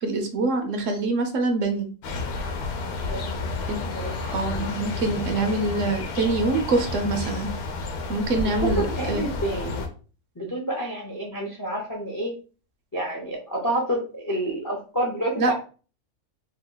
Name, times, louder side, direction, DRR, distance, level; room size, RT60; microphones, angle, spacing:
voice 1, 0.0-1.9 3.7-3.9 4.3-7.5 8.1-9.2 15.4-15.5, right 3 dB, 65° right, 5 dB, 0.9 m, -25 dB
sound 1, 2.0-9.9, left 3 dB, 90° left, 1.1 m, -30 dB
voice 2, 3.0-3.5 3.9-4.3 5.3-5.5 8.6-9.8 10.4-12.3 12.9-15.5, right 1 dB, 30° left, -1 dB, 0.4 m, -29 dB
3.0 x 2.2 x 3.8 m, 0.37 s
omnidirectional pair, 1.5 m